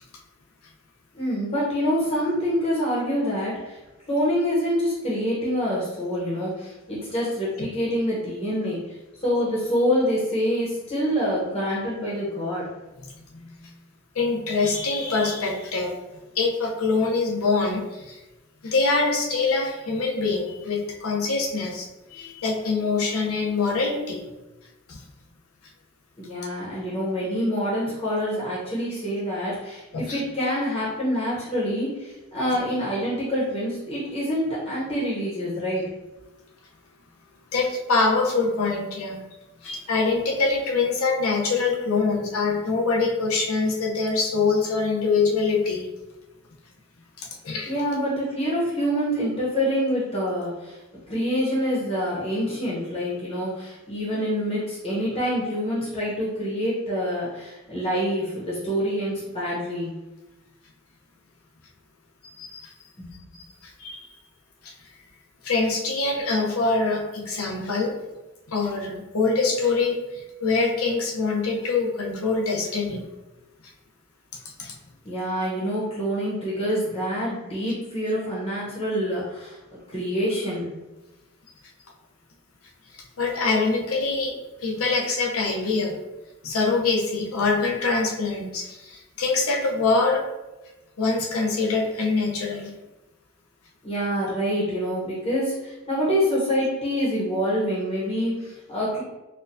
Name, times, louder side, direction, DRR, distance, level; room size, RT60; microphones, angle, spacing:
voice 1, 1.1-3.8 4.1-9.0 9.2-12.7 26.2-35.9 47.7-50.8 51.1-59.9 63.0-63.2 75.0-80.7 93.8-99.0, equal, 25° left, -7 dB, 0.8 m, -26 dB
voice 2, 14.1-15.9 16.4-18.2 18.6-24.2 24.9-25.0 29.9-30.2 37.5-39.2 39.6-45.9 47.2-47.7 62.2-62.7 63.3-64.0 64.6-64.7 65.4-67.9 68.5-73.0 74.6-74.7 82.9-84.3 84.6-86.0 86.4-90.3 91.0-92.7, left 4 dB, 85° left, 0 dB, 0.7 m, -24 dB
4.3 x 2.3 x 2.6 m, 1.1 s
head